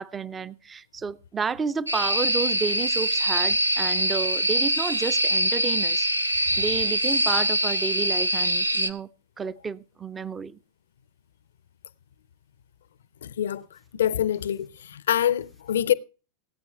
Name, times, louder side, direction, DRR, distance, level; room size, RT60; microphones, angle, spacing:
voice 1, 0.0-6.1 6.3-9.1 9.4-10.6, right 5 dB, 20° right, 0.5 m, -31 dB
sound 1, 1.9-8.9, right 1 dB, 85° right, 0.6 m, -24 dB
voice 2, 13.2-13.6 14.0-14.7 15.1-15.9, left 10 dB, 65° left, 0.5 m, -24 dB
17.0 x 9.1 x 3.3 m
figure-of-eight pair, 90°, 0 cm